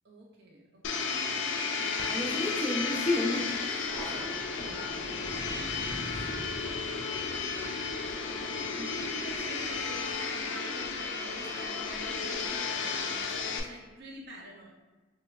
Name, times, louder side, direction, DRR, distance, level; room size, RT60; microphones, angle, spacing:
voice 1, 0.0-1.1 5.9-6.6 8.1-14.7, right 1 dB, 50° right, -2 dB, 0.4 m, -47 dB
Domestic sounds home sounds, 0.8-13.6, left 4 dB, 65° left, 0.3 m, -33 dB
voice 2, 1.8-5.0 8.8-8.9, left 2 dB, 5° left, -4 dB, 0.5 m, -33 dB
Thunder, 3.8-10.8, equal, 85° right, 1.1 m, -46 dB
3.2 x 2.9 x 2.3 m, 1.2 s
head